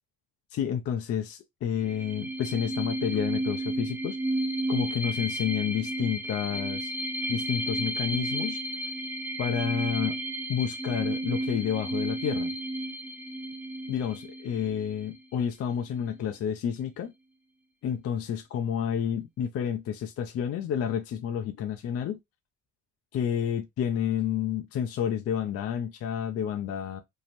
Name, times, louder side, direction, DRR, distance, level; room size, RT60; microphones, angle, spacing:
voice 1, 0.5-4.2 4.7-6.9 7.3-8.6 9.4-10.2 10.5-12.5 13.9-17.1 17.8-22.2 23.1-27.0, left 8 dB, 55° left, 0.4 m, -30 dB
sound 1, 1.8-15.2, right 1 dB, 5° right, 0.5 m, -32 dB
2.6 x 2.0 x 2.9 m
cardioid pair, 90°, 30 cm